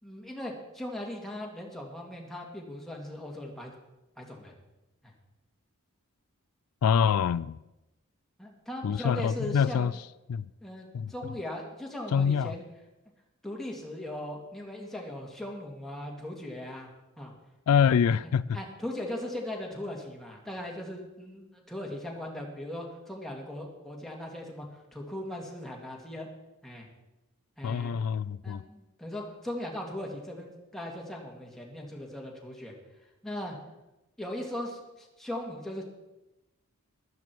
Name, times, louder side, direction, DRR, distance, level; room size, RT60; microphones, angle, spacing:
voice 1, 0.0-3.7 4.2-4.5 5.0-5.1 8.4-9.9 10.6-12.6 13.4-16.9 17.2-17.3 18.5-24.7 24.9-26.3 26.6-26.9 27.6-28.0 28.4-32.7 33.2-33.6 34.2-35.8, left 1 dB, ahead, 2.3 m, -39 dB
voice 2, 6.8-7.6 8.8-9.9 10.3-10.5 10.9-11.1 12.1-12.5 17.7-18.6 27.6-28.6, left 7 dB, 85° left, 0.3 m, -25 dB
15.0 x 12.5 x 4.6 m
head